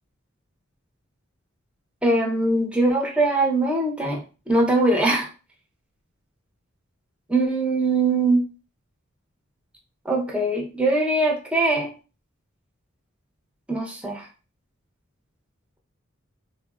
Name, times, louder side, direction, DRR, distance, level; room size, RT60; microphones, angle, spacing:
voice 1, 2.0-5.3 7.3-8.4 10.1-11.9 13.7-14.3, right 2 dB, 5° right, -1 dB, 0.6 m, -22 dB
3.5 x 2.0 x 2.3 m, 0.33 s
head